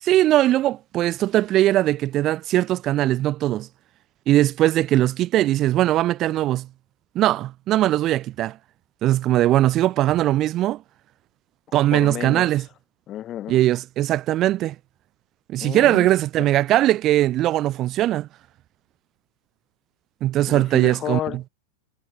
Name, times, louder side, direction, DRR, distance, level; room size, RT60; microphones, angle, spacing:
voice 1, 0.0-3.7 4.3-6.7 7.1-8.6 9.0-10.8 11.7-12.6 13.5-14.8 15.5-18.3 20.2-21.2, right 14 dB, 35° right, 0.8 m, -20 dB
voice 2, 11.9-12.5 13.1-13.6 15.6-16.1 16.4-16.5 20.5-21.5, left 12 dB, 30° left, 5.3 m, -31 dB
figure-of-eight pair, 90°, 0 cm